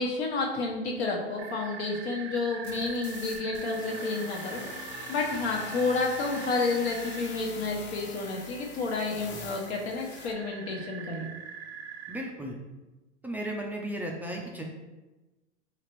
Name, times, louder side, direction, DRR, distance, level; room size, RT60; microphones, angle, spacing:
voice 1, 0.0-11.3, left 3 dB, 65° left, 0 dB, 1.1 m, -30 dB
sound 1, 1.4-12.2, right 7 dB, 65° right, 0.7 m, -43 dB
sound 2, 2.6-10.3, left 4 dB, 35° left, 0.6 m, -43 dB
voice 2, 12.1-12.6 13.2-14.6, right 1 dB, 5° right, -1 dB, 0.4 m, -35 dB
5.0 x 3.0 x 3.0 m, 1.1 s
hypercardioid pair, 95°, 34 cm